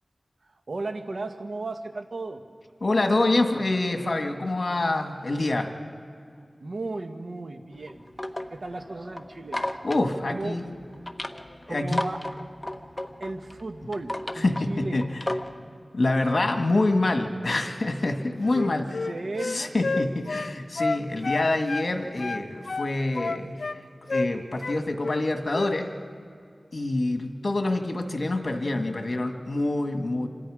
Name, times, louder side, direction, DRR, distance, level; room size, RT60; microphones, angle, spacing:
voice 1, 0.4-2.4 6.6-8.0 8.5-9.6 10.3-10.6 11.7-12.2 13.2-15.0 18.6-19.7, right 2 dB, 75° right, 6 dB, 1.5 m, -35 dB
voice 2, 2.8-5.7 9.8-10.6 11.7-12.0 14.4-15.1 15.9-18.9 19.4-23.6 24.0-25.9 26.7-30.3, left 2 dB, 65° left, 4 dB, 2.0 m, -26 dB
sound 1, 7.7-15.6, left 1 dB, 25° left, 1.3 m, -35 dB
Wind instrument woodwind instrument, 18.4-21.9 22.2-23.8 24.1-24.3 24.6-25.3 25.5-25.8, left 3 dB, 80° left, 0.7 m, -30 dB
27.5 x 26.5 x 5.1 m, 2.2 s
wide cardioid pair, 45°, 0 cm